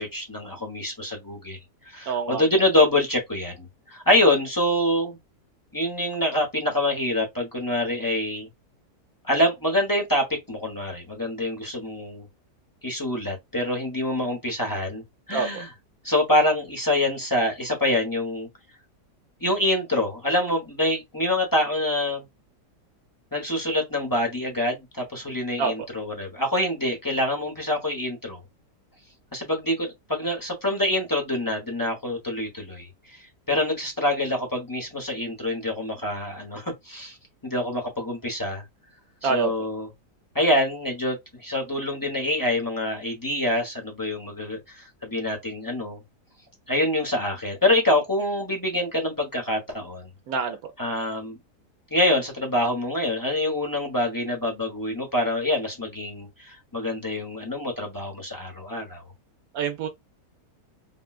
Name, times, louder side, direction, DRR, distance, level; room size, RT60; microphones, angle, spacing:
voice 1, 0.0-1.6 1.8-5.2 5.7-8.5 9.2-12.2 12.8-15.0 15.3-15.7 16.0-18.5 19.4-22.2 23.3-28.4 29.3-37.2 37.4-38.6 39.2-39.9 40.3-41.2 41.4-46.0 46.7-50.1 50.8-51.4 51.9-59.0, left 1 dB, 20° left, 0.7 m, -25 dB
voice 2, 2.1-2.4 15.3-15.5 25.6-25.7 39.2-39.5 50.3-50.6 59.5-59.9, right 5 dB, 70° right, 1.0 m, -25 dB
3.6 x 2.3 x 2.3 m
omnidirectional pair, 1.7 m